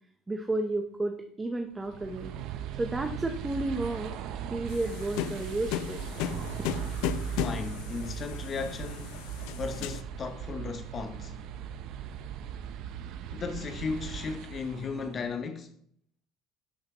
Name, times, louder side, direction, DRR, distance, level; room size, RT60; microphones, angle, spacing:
voice 1, 0.3-2.4 2.8-4.1 4.5-6.0, right 2 dB, 15° right, 0.8 m, -32 dB
sound 1, 1.8-15.3, right 9 dB, 65° right, 0.6 m, -38 dB
sound 2, 4.7-10.0, left 11 dB, 80° left, 0.4 m, -36 dB
voice 2, 7.4-9.2 9.6-11.4 13.3-15.7, left 5 dB, 35° left, 0.7 m, -36 dB
11.5 x 5.6 x 3.0 m
supercardioid pair, 110°, 0 cm